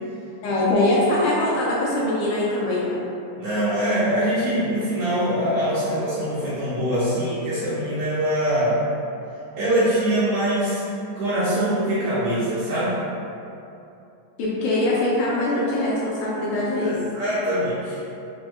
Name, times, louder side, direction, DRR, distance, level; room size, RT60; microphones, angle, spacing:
voice 1, 0.4-3.0 14.4-17.0, left 1 dB, 80° left, -6 dB, 1.8 m, -22 dB
voice 2, 3.4-8.8 9.6-10.8 11.1-13.0 16.8-18.1, right 1 dB, 80° right, -9 dB, 1.7 m, -23 dB
6.1 x 2.6 x 2.4 m, 2.8 s
omnidirectional pair, 3.8 m